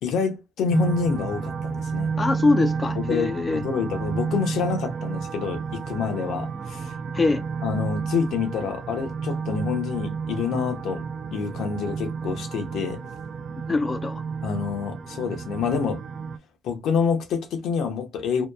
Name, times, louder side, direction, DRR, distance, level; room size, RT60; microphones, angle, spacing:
voice 1, 0.0-2.2 2.9-6.9 7.6-11.1 11.3-13.0 14.4-16.0 16.6-18.5, left 6 dB, 85° left, 0.7 m, -27 dB
sound 1, 0.7-16.4, right 5 dB, 50° right, 0.3 m, -31 dB
voice 2, 2.2-3.6 7.1-7.4 13.7-14.2, left 3 dB, 30° left, 0.3 m, -23 dB
2.8 x 2.2 x 2.2 m
cardioid pair, 90°, 0 cm